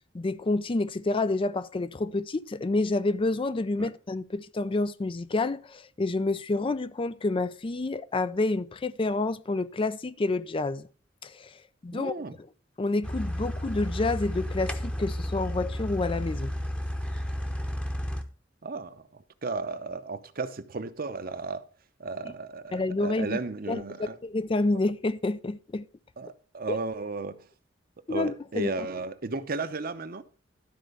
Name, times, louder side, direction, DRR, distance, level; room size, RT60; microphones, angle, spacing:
voice 1, 0.1-10.9 11.2-11.5 11.8-12.5 12.8-16.5 22.2-22.3 22.7-23.4 23.7-25.9 26.7-26.8 28.1-28.7, left 2 dB, 30° left, 0.4 m, -29 dB
voice 2, 11.9-12.4 18.6-19.0 19.4-21.7 22.0-24.2 26.2-27.4 28.1-30.2, right 3 dB, 50° right, 0.8 m, -34 dB
sound 1, 13.0-18.2, equal, 5° left, 0.9 m, -32 dB
12.5 x 4.5 x 6.5 m
head